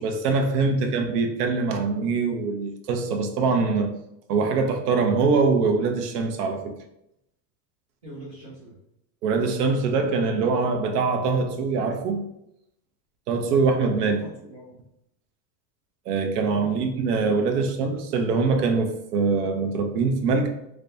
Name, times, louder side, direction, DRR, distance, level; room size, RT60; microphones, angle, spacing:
voice 1, 0.0-3.9 4.3-6.7 9.2-12.2 13.3-14.2 16.1-20.5, right 4 dB, 70° right, 0.8 m, -23 dB
voice 2, 8.0-8.7 14.0-14.8 16.6-17.6, right 1 dB, 25° right, 0.3 m, -44 dB
3.3 x 3.3 x 2.6 m
supercardioid pair, 180°, 49 cm